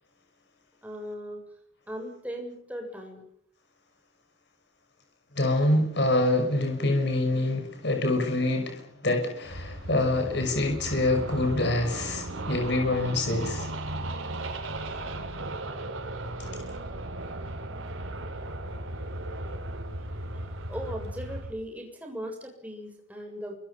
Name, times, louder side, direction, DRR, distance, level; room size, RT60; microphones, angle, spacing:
voice 1, 0.8-1.4 1.9-3.2 20.3-23.5, equal, 5° right, 1 dB, 7.4 m, -38 dB
voice 2, 5.4-13.7, left 2 dB, 55° left, 4 dB, 5.9 m, -26 dB
sound 1, 9.4-21.5, right 1 dB, 85° right, 6.0 m, -36 dB
29.0 x 26.0 x 5.7 m, 0.68 s
head